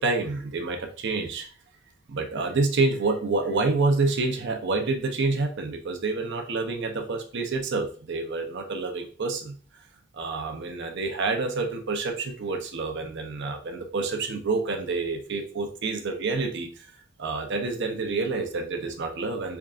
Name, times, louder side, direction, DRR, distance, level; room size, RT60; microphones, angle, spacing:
voice 1, 0.0-1.5 2.1-9.5 10.1-16.8 17.2-19.6, right 3 dB, 60° right, 4 dB, 0.7 m, -28 dB
3.7 x 3.5 x 2.4 m, 0.41 s
head